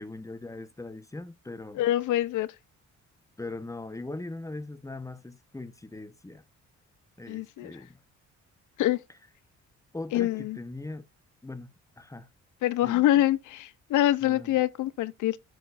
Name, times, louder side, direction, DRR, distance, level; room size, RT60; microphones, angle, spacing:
voice 1, 0.0-1.8 3.4-6.4 7.2-8.0 9.9-11.0 11.4-12.3 12.8-13.0 14.2-14.6, left 2 dB, 10° left, 1.0 m, -40 dB
voice 2, 1.7-2.5 7.3-7.7 8.8-9.0 10.1-10.6 12.6-15.4, left 14 dB, 80° left, 0.7 m, -25 dB
12.5 x 6.5 x 2.5 m
cardioid pair, 90°, 30 cm